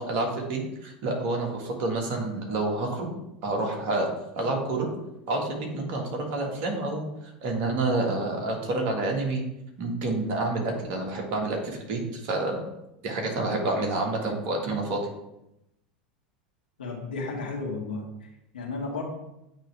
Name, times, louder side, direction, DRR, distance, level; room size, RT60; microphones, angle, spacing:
voice 1, 0.0-3.1 3.4-4.1 4.3-4.9 5.3-7.0 7.4-9.4 9.8-12.6 13.0-15.0, right 2 dB, 50° right, 1 dB, 1.6 m, -28 dB
voice 2, 16.8-19.0, left 3 dB, 75° left, -2 dB, 1.9 m, -34 dB
8.6 x 3.2 x 4.7 m, 0.88 s
figure-of-eight pair, 85°, 5 cm